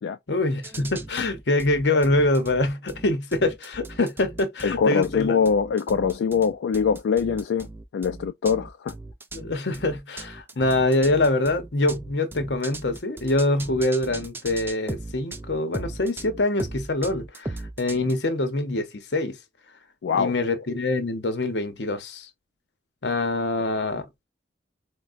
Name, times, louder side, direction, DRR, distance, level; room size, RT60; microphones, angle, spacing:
voice 1, 0.3-5.3 9.3-19.4 20.1-22.3 23.0-24.1, left 2 dB, 75° left, 0.8 m, -24 dB
sound 1, 0.6-18.1, right 2 dB, 10° right, 0.3 m, -38 dB
voice 2, 4.6-7.7 7.9-8.9 20.0-20.3, left 6 dB, 90° left, 0.3 m, -23 dB
4.5 x 2.1 x 2.5 m
head